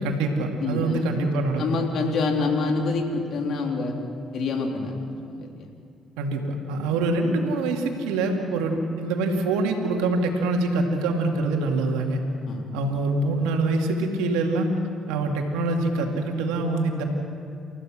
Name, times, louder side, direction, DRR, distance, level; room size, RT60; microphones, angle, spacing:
voice 1, 0.0-1.7 6.2-6.4 6.7-12.2 12.7-14.7 15.1-17.0, right 2 dB, 85° right, 2 dB, 2.6 m, -25 dB
voice 2, 0.6-1.1 1.6-3.9 4.3-5.7 12.5-12.7, left 3 dB, 65° left, 2 dB, 3.4 m, -27 dB
29.0 x 15.0 x 6.4 m, 2.4 s
hypercardioid pair, 55°, 0 cm